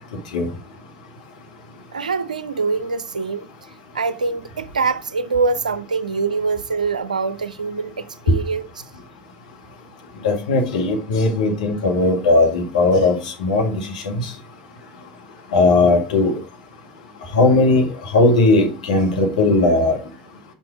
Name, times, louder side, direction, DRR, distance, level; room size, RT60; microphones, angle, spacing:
voice 1, 1.9-3.5 3.9-8.8, right 4 dB, 90° right, 0.5 m, -24 dB
voice 2, 10.2-14.3 15.5-16.4 17.3-17.9 18.1-20.0, left 2 dB, 80° left, 1.8 m, -17 dB
5.9 x 5.4 x 4.7 m
hypercardioid pair, 70°, 4 cm